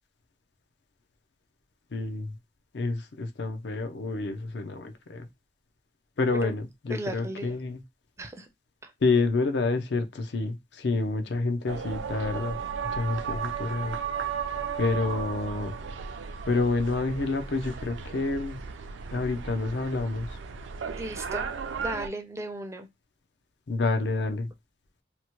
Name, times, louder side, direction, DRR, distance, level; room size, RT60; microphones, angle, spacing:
voice 1, 1.9-2.3 2.7-5.3 6.2-7.8 9.0-12.6 12.9-14.0 14.8-15.7 16.5-18.6 19.1-20.3 23.7-24.5, left 3 dB, 70° left, 0.5 m, -28 dB
voice 2, 6.9-7.5 8.2-8.5 8.8-8.9 20.9-21.5 21.8-22.9, right 1 dB, 15° right, 0.4 m, -36 dB
sound 1, 11.7-22.1, right 6 dB, 85° right, 0.4 m, -35 dB
2.9 x 2.1 x 2.9 m
head